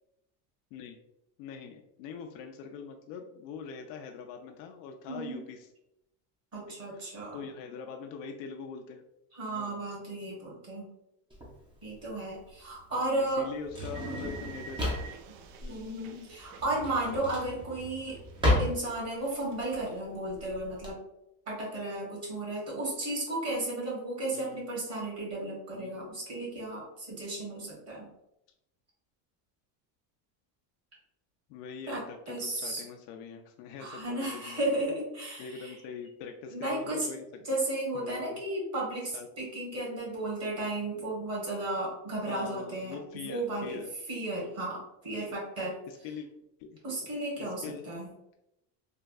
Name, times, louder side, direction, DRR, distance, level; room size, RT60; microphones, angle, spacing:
voice 1, 1.4-5.6 6.9-9.0 9.5-9.8 12.9-15.2 15.6-15.9 24.3-24.7 25.7-26.0 31.5-34.8 35.4-37.2 37.9-38.4 39.1-39.3 42.3-43.9 44.4-44.5 45.3-45.4 45.9-46.3 46.7-47.1 47.4-47.9, left 6 dB, 80° left, 4 dB, 0.5 m, -43 dB
voice 2, 5.1-5.4 6.5-7.4 9.3-10.9 11.8-13.5 15.7-18.2 18.6-21.0 21.5-28.1 31.9-32.8 33.8-35.8 36.5-37.1 37.4-43.8 44.1-45.8 46.8-48.1, right 2 dB, 30° right, -4 dB, 1.4 m, -34 dB
Drawer open or close, 11.3-20.9, left 1 dB, 10° right, 0.5 m, -33 dB
sound 1, 13.9-17.9 18.1-20.0, right 5 dB, 60° right, 0.5 m, -50 dB
3.4 x 2.2 x 2.4 m, 0.84 s
supercardioid pair, 125°, 49 cm